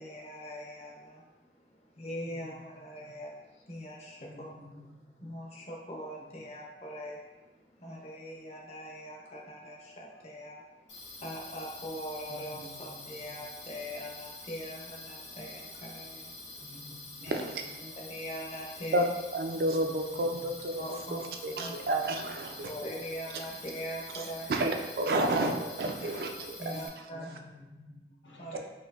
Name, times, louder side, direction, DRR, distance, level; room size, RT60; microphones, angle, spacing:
voice 1, 0.0-1.3 1.7-4.5 4.9-17.4 17.8-19.0 20.8-21.2 21.6-21.7 22.6-24.5 26.6-27.5 28.3-28.6, equal, 35° left, -2 dB, 0.6 m, -42 dB
voice 2, 2.3-2.7 4.3-4.9 5.2-5.3 12.3-13.2 16.6-17.3 19.8-20.2 27.1-28.6, left 2 dB, 90° left, -2 dB, 0.7 m, -51 dB
sound 1, 10.9-26.9, left 2 dB, 70° left, 1.2 m, -47 dB
voice 3, 17.3-17.6 18.9-19.0 19.3-20.8 21.1-22.7 24.5-24.7 25.0-26.9 28.5-28.6, right 1 dB, 55° right, 4 dB, 0.3 m, -30 dB
4.3 x 2.6 x 2.4 m, 1.1 s
head